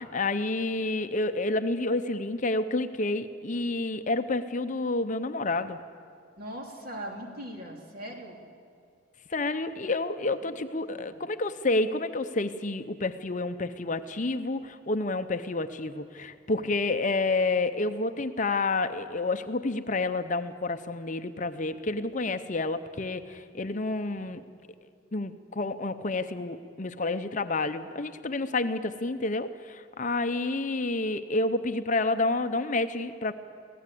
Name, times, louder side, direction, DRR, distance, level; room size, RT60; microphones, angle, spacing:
voice 1, 0.0-5.8 9.3-24.4 25.1-33.3, left 2 dB, 40° left, 10 dB, 0.7 m, -29 dB
voice 2, 6.4-8.4 10.3-10.6 10.9-11.3, right 1 dB, 45° right, 1 dB, 3.0 m, -41 dB
24.5 x 17.0 x 8.5 m, 2.4 s
head